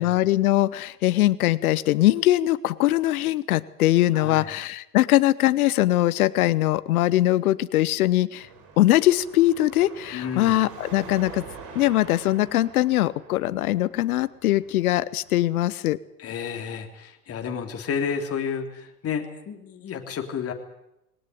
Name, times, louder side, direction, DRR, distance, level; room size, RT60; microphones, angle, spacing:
voice 1, 0.0-8.5 8.8-11.4 11.7-16.0, left 15 dB, 65° left, 18 dB, 1.1 m, -21 dB
voice 2, 4.1-4.5 10.1-10.6 16.2-20.5, left 7 dB, 30° left, 4 dB, 3.3 m, -31 dB
Car passing by / Traffic noise roadway noise / Engine, 8.4-15.7, right 5 dB, 45° right, 5.9 m, -45 dB
20.5 x 18.5 x 9.5 m, 0.85 s
hypercardioid pair, 90°, 46 cm